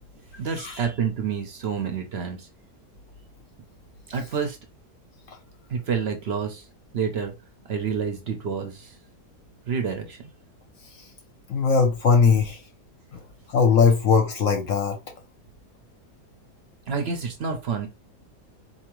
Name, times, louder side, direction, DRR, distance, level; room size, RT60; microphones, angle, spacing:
voice 1, 0.4-2.5 4.1-4.6 5.7-6.7 6.9-7.3 7.6-9.0 9.7-10.3 16.9-17.9, right 6 dB, 55° right, 0.7 m, -28 dB
voice 2, 11.5-12.6 13.1-13.2 13.5-15.0, left 5 dB, 60° left, 0.9 m, -20 dB
4.2 x 2.8 x 2.9 m
omnidirectional pair, 1.8 m